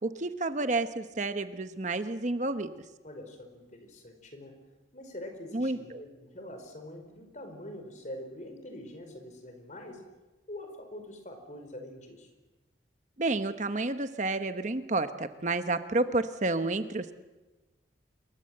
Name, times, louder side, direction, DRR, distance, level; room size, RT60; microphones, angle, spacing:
voice 1, 0.0-2.7 5.5-6.0 13.2-17.1, right 2 dB, 40° right, 10 dB, 1.0 m, -30 dB
voice 2, 3.0-4.5 4.9-10.0 10.5-12.3, left 1 dB, 40° left, 5 dB, 4.9 m, -44 dB
27.5 x 23.0 x 7.8 m, 1.2 s
head